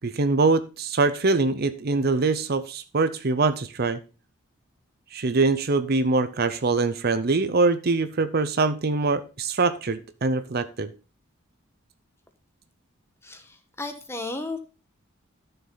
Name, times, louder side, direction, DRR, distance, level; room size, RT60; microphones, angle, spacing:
voice 1, 0.0-4.0 5.1-10.9, right 3 dB, 45° right, 12 dB, 0.6 m, -23 dB
voice 2, 13.2-14.6, left 2 dB, 10° left, 7 dB, 1.3 m, -34 dB
12.5 x 6.9 x 3.9 m, 0.32 s
head